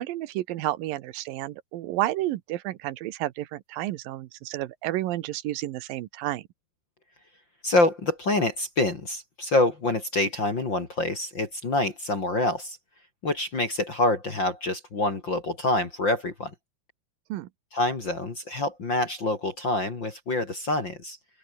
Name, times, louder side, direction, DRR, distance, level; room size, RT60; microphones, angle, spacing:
voice 1, 0.0-6.4 17.3-17.5, right 15 dB, 70° right, 2.4 m, -31 dB
voice 2, 7.6-12.8 13.2-16.5 17.7-21.2, left 2 dB, 30° left, 2.9 m, -26 dB
open air
omnidirectional pair, 4.8 m